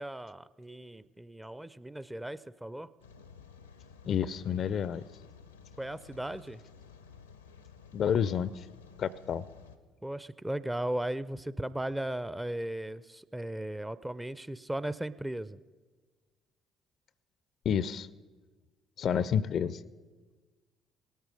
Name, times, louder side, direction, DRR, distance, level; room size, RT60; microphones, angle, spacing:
voice 1, 0.0-2.9 5.8-6.6 10.0-15.6, right 1 dB, 10° right, 17 dB, 0.5 m, -36 dB
Rain, 3.0-9.8, left 6 dB, 85° left, 0.7 m, -54 dB
voice 2, 4.1-5.0 7.9-8.6 9.0-9.4 17.6-18.1 19.0-19.8, left 8 dB, 50° left, 19 dB, 0.4 m, -29 dB
18.0 x 13.0 x 5.2 m, 1.4 s
figure-of-eight pair, 50°, 0 cm